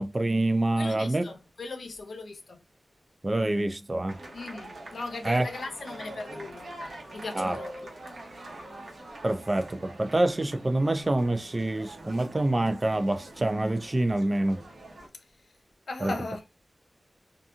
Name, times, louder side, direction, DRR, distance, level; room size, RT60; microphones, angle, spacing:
voice 1, 0.0-1.2 3.2-4.2 5.2-5.5 7.3-7.6 9.2-14.6 16.0-16.1, right 1 dB, 35° right, 0.4 m, -26 dB
voice 2, 0.8-2.6 4.3-6.7 7.1-7.9 15.1-15.2 15.9-16.4, left 3 dB, 80° left, 0.7 m, -38 dB
sound 1, 4.1-15.1, right 1 dB, 80° right, 1.0 m, -44 dB
2.8 x 2.6 x 2.3 m
wide cardioid pair, 75°, 0 cm